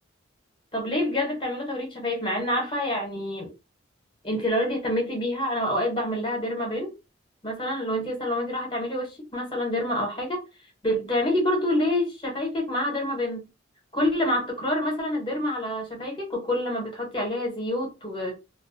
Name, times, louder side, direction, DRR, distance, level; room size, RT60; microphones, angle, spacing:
voice 1, 0.7-3.5 4.2-6.9 7.4-10.4 10.8-13.5 13.9-18.4, left 1 dB, 25° left, 0.8 m, -27 dB
2.3 x 2.1 x 2.5 m
head